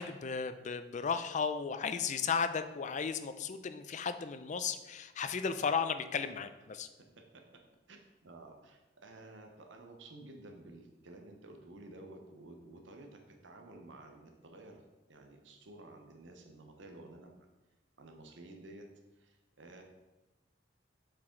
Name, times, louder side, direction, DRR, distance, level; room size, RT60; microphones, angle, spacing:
voice 1, 0.0-6.9, left 6 dB, 40° left, 10 dB, 0.4 m, -35 dB
voice 2, 7.2-7.6 7.9-14.8 15.1-17.3 18.0-18.9 19.1-19.8, right 2 dB, 80° right, 3 dB, 0.9 m, -53 dB
7.4 x 4.8 x 3.8 m, 1.1 s
head